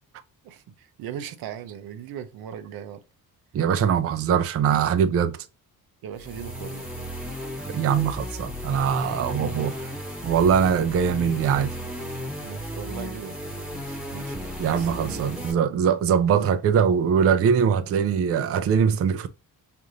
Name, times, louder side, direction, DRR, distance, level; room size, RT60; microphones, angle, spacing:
voice 1, 0.4-3.0 6.0-6.9 9.0-9.9 12.4-15.5 17.6-17.7 19.1-19.3, right 9 dB, 80° right, 0.7 m, -39 dB
voice 2, 3.5-5.4 7.7-9.8 10.2-11.8 14.6-19.3, right 7 dB, 40° right, 0.4 m, -22 dB
sound 1, 6.1-15.5, equal, ahead, 1.3 m, -34 dB
5.1 x 2.5 x 2.8 m
cardioid pair, 110°, 35 cm